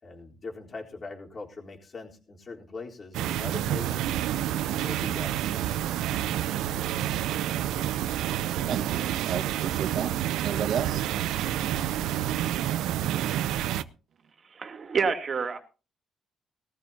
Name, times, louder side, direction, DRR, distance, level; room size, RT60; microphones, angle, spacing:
voice 1, 0.0-4.1 4.7-5.9 6.3-7.4, left 3 dB, 40° left, 3.8 m, -42 dB
sound 1, 3.1-13.8, right 12 dB, 90° right, 0.6 m, -28 dB
voice 2, 8.7-10.1 10.4-11.2, right 7 dB, 70° right, 1.6 m, -32 dB
voice 3, 14.4-15.6, right 5 dB, 45° right, 2.8 m, -28 dB
20.0 x 14.5 x 2.8 m
cardioid pair, 90°, 0 cm